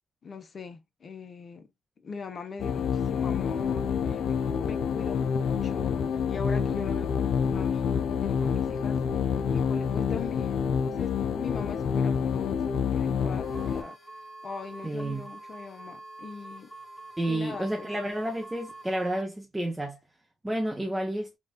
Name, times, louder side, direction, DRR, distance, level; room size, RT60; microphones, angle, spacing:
voice 1, 0.2-1.7 2.0-9.0 9.5-14.0 14.4-16.7 17.3-17.9, left 5 dB, 45° left, 0.8 m, -41 dB
sound 1, 2.6-13.8, left 7 dB, 70° left, 0.4 m, -28 dB
sound 2, 13.4-19.2, right 2 dB, 5° left, 1.4 m, -46 dB
voice 2, 14.8-15.2 17.2-20.0 20.4-21.3, right 1 dB, 10° right, 0.6 m, -30 dB
4.0 x 2.4 x 2.3 m
cardioid pair, 90°, 0 cm